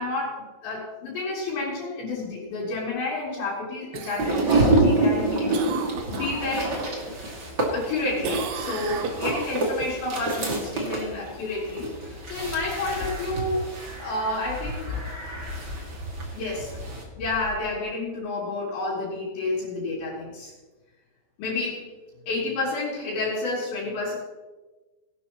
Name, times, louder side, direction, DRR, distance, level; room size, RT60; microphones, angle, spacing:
voice 1, 0.0-6.8 7.7-13.6 14.0-14.8 16.3-16.8 17.2-20.5 21.4-21.8 22.3-24.1, left 2 dB, 65° left, -7 dB, 5.2 m, -30 dB
Cough, 3.9-6.9 7.3-7.9 8.2-9.9 14.3-14.4, right 7 dB, 80° right, 2.3 m, -36 dB
sound 1, 4.2-17.0, right 2 dB, 55° right, 1.2 m, -28 dB
sound 2, 11.6-18.1, left 6 dB, 80° left, 3.3 m, -38 dB
19.0 x 11.5 x 3.0 m, 1.2 s
omnidirectional pair, 5.7 m